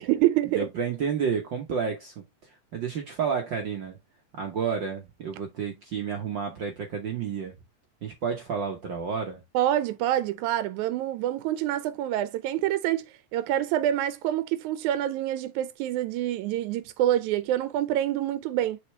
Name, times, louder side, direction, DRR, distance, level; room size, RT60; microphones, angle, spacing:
voice 1, 0.0-0.7 9.5-18.8, right 12 dB, 90° right, 2.0 m, -26 dB
voice 2, 0.5-4.0 4.3-7.6 8.0-9.4, right 6 dB, 60° right, 1.2 m, -31 dB
6.7 x 4.4 x 3.2 m
omnidirectional pair, 3.3 m